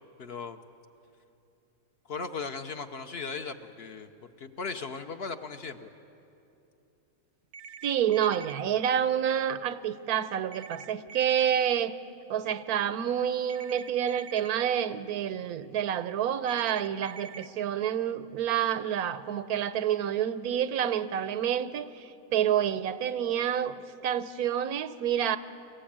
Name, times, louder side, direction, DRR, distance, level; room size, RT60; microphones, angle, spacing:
voice 1, 0.2-0.6 2.1-4.1 4.4-5.9, left 4 dB, 50° left, 8 dB, 0.9 m, -37 dB
sound 1, 7.5-8.5 10.5-11.5 13.5-14.5 16.5-17.5, right 5 dB, 60° right, 0.8 m, -46 dB
voice 2, 7.8-11.9 12.3-23.8 24.0-25.4, right 9 dB, 90° right, 13 dB, 1.2 m, -28 dB
24.0 x 15.5 x 8.7 m, 2.8 s
omnidirectional pair, 1.5 m